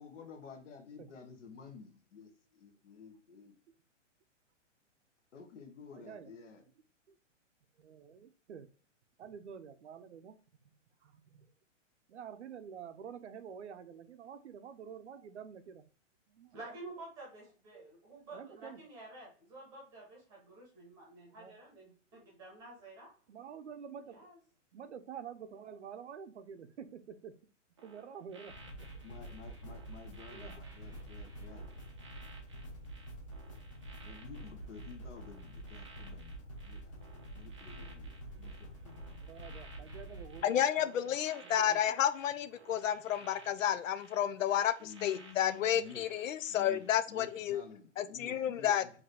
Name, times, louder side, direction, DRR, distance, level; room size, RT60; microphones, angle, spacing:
voice 1, 0.0-2.3 2.6-3.5 5.3-6.6 29.0-31.7 34.0-36.4 36.6-37.1 37.3-38.1 38.4-39.2 44.8-46.1 46.5-48.9, left 5 dB, 70° left, 1.3 m, -52 dB
voice 2, 5.9-6.3 7.1-7.2 7.8-8.7 9.2-10.4 11.0-11.5 12.1-15.9 16.3-16.8 17.7-17.8 18.3-18.8 21.3-21.6 23.3-24.3 24.7-27.3 27.8-28.5 28.8-29.0 30.3-31.1 32.8-32.9 36.9-37.0 39.2-42.0, right 7 dB, 65° right, 0.6 m, -49 dB
voice 3, 16.5-23.1 24.1-24.4, right 2 dB, 10° right, 0.9 m, -50 dB
sound 1, 27.8-46.9 47.3-47.5, right 3 dB, 25° right, 0.5 m, -58 dB
sound 2, 28.5-40.4, right 1 dB, 25° left, 0.8 m, -47 dB
voice 4, 40.4-47.6 48.0-48.8, left 10 dB, 85° left, 0.6 m, -31 dB
4.8 x 2.7 x 3.5 m
hypercardioid pair, 175°, 38 cm